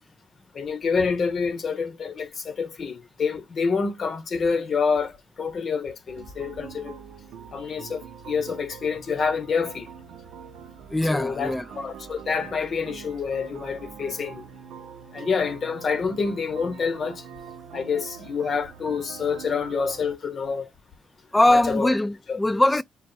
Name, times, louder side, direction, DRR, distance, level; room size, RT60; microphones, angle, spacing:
voice 1, 0.5-5.1 5.4-7.0 7.5-9.9 11.1-14.4 15.1-17.2 17.7-20.7 21.5-21.9 22.3-22.4, left 5 dB, 50° left, 1.0 m, -27 dB
sound 1, 6.1-20.2, right 7 dB, 80° right, 0.6 m, -44 dB
voice 2, 10.9-11.6 21.3-22.8, left 1 dB, 10° left, 0.3 m, -21 dB
4.1 x 2.0 x 4.3 m
cardioid pair, 90°, 0 cm